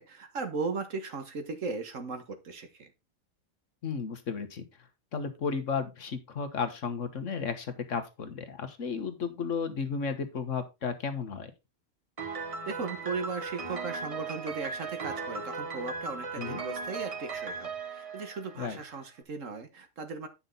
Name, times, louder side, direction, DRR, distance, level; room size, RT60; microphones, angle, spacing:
voice 1, 0.0-2.9 12.3-20.3, right 4 dB, 65° right, 1.6 m, -37 dB
voice 2, 3.8-4.6 5.1-11.5 16.4-16.6 18.6-18.8, left 5 dB, 60° left, 1.5 m, -33 dB
Piano, 12.2-19.0, right 4 dB, 30° right, 0.8 m, -37 dB
9.7 x 5.7 x 3.9 m
omnidirectional pair, 1.5 m